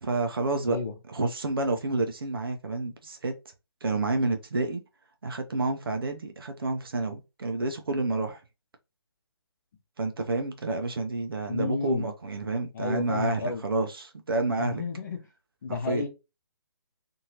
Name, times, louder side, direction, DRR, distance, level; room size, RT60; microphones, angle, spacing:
voice 1, 0.0-0.8 1.1-3.3 3.8-4.8 5.2-8.4 10.0-14.8 15.7-16.1, right 2 dB, 60° right, 0.8 m, -29 dB
voice 2, 11.5-12.1 12.7-13.6 14.5-15.2 15.6-16.1, left 4 dB, 45° left, 0.9 m, -32 dB
2.8 x 2.7 x 2.9 m
figure-of-eight pair, 140°, 13 cm